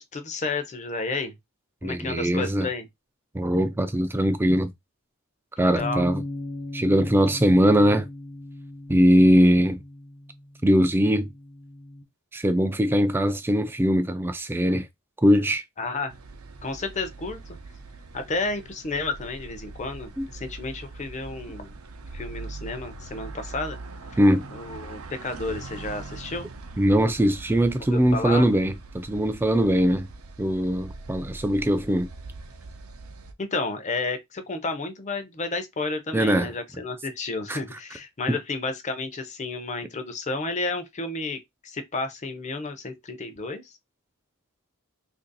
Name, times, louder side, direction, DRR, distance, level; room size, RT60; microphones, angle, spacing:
voice 1, 0.0-1.3 1.8-2.8 5.6-6.1 15.8-16.1 16.6-17.4 18.1-21.8 22.1-23.8 24.1-24.2 24.5-26.5 27.9-28.5 33.4-43.7, left 3 dB, 30° left, 0.6 m, -31 dB
voice 2, 1.8-2.7 3.3-4.7 5.6-6.2 6.7-8.1 8.9-9.8 10.6-11.3 12.3-14.9 15.2-15.6 20.2-20.3 24.2-24.5 26.8-30.1 30.4-32.1 36.1-36.5 37.5-37.6 38.3-38.4, equal, 10° right, 0.3 m, -21 dB
sound 1, 5.8-12.0, left 1 dB, 70° left, 1.0 m, -38 dB
sound 2, 16.1-33.3, right 3 dB, 65° right, 0.6 m, -42 dB
2.9 x 2.6 x 3.9 m
head